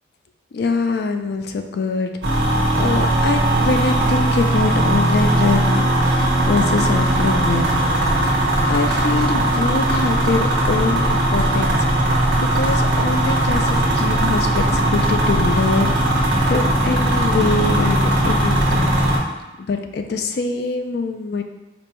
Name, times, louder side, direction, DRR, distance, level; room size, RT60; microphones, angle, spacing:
voice 1, 0.5-2.1 2.7-7.8 8.2-8.3 8.7-11.9 12.4-18.9 19.6-21.4, left 4 dB, 55° left, 6 dB, 0.3 m, -24 dB
sound 1, 2.2-19.2, right 1 dB, 70° right, 1.1 m, -18 dB
5.0 x 2.1 x 4.4 m, 1.0 s
head